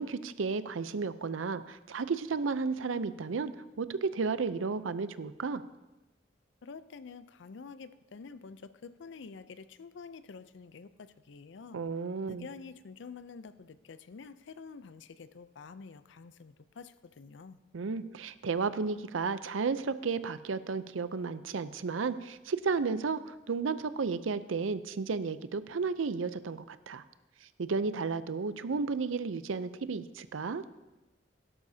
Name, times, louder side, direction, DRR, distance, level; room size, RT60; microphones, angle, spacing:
voice 1, 0.0-5.6 11.7-12.5 17.7-27.0 27.4-30.6, right 4 dB, 90° right, 14 dB, 0.5 m, -33 dB
voice 2, 6.6-11.8 12.3-17.6, left 5 dB, 65° left, 14 dB, 0.5 m, -48 dB
16.5 x 12.0 x 2.8 m, 1.1 s
head